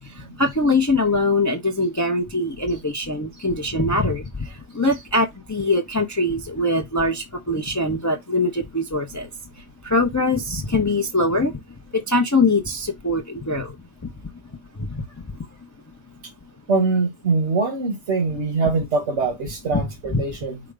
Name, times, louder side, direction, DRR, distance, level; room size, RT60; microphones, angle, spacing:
voice 1, 0.4-4.2 4.7-9.3 9.8-11.5 11.9-13.7 19.7-19.8 20.1-20.2, left 2 dB, 25° left, 0.4 m, -22 dB
voice 2, 16.7-20.6, right 3 dB, 80° right, 1.5 m, -23 dB
4.8 x 2.2 x 4.8 m
omnidirectional pair, 1.2 m